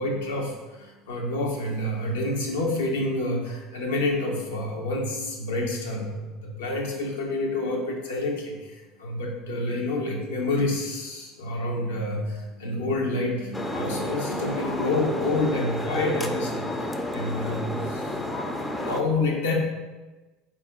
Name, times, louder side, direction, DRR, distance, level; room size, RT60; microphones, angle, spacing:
voice 1, 0.0-18.3 18.8-19.5, left 2 dB, 80° left, -1 dB, 0.8 m, -28 dB
sound 1, 13.5-19.0, left 1 dB, 15° left, 0.4 m, -30 dB
4.0 x 2.4 x 3.5 m, 1.2 s
hypercardioid pair, 75°, 0 cm